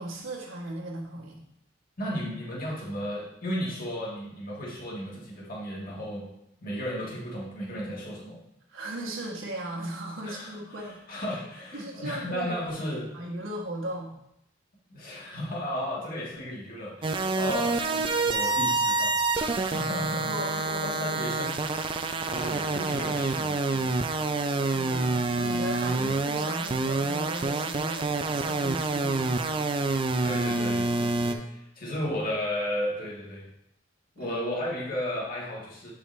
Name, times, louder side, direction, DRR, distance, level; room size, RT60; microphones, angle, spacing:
voice 1, 0.0-1.5 8.7-11.0 11.7-12.5 13.1-14.2 17.5-17.6 20.0-21.6 24.4-29.4 34.2-34.4, right 1 dB, 80° right, -3 dB, 1.2 m, -37 dB
voice 2, 2.0-6.3 6.6-8.4 10.2-13.1 14.9-19.2 19.6-21.5 22.3-23.9 25.9-26.1 30.2-33.5 34.1-35.9, left 1 dB, 45° left, -3 dB, 1.6 m, -34 dB
sound 1, 17.0-31.3, right 3 dB, 25° right, 0.3 m, -27 dB
7.6 x 4.8 x 3.2 m, 0.79 s
head